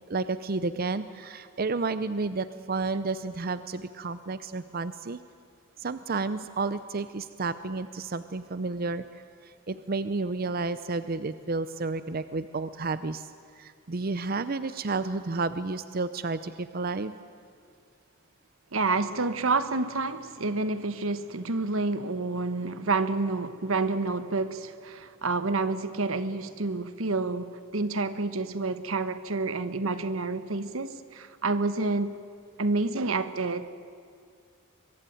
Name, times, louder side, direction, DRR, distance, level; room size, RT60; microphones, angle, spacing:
voice 1, 0.1-5.2 5.8-9.0 9.7-13.3 13.6-17.1, right 3 dB, 45° right, 13 dB, 0.6 m, -31 dB
voice 2, 18.7-32.1 32.6-33.7, right 3 dB, 85° right, 12 dB, 1.2 m, -29 dB
24.0 x 22.0 x 9.2 m, 2.2 s
head